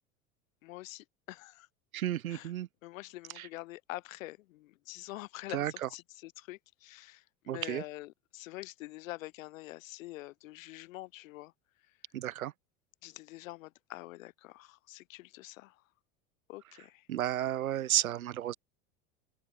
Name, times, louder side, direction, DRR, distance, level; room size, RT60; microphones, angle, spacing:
voice 1, 0.6-1.7 2.3-2.5 2.8-11.5 11.8-12.0 13.0-15.9 16.5-17.1, left 18 dB, 65° left, 7.6 m, -46 dB
voice 2, 1.9-2.7 3.4-3.5 5.5-5.9 7.5-7.8 12.1-12.5 17.1-18.5, right 12 dB, 75° right, 3.9 m, -32 dB
hypercardioid pair, 85°, 42 cm